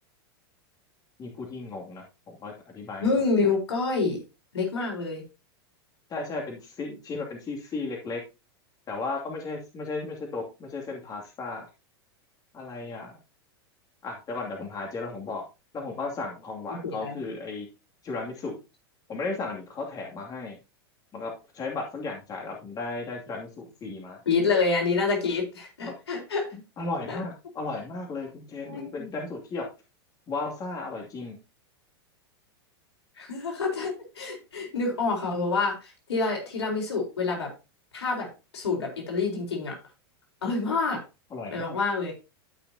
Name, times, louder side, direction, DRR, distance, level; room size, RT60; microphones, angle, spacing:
voice 1, 1.2-3.1 3.4-3.5 6.1-8.2 8.9-11.6 12.5-13.2 14.0-15.4 15.7-17.7 18.0-18.6 19.1-20.6 21.1-24.2 25.9-26.0 26.5-29.7 30.3-31.4 41.3-41.8, left 3 dB, 30° left, 0 dB, 2.6 m, -35 dB
voice 2, 3.0-4.2 4.5-5.2 16.8-17.2 24.3-26.6 27.1-27.2 28.6-29.1 33.2-37.5 37.9-38.3 38.5-39.7 40.4-41.0 41.5-42.1, left 4 dB, 90° left, 0 dB, 4.4 m, -27 dB
13.5 x 6.1 x 2.8 m, 0.28 s
hypercardioid pair, 115°, 13 cm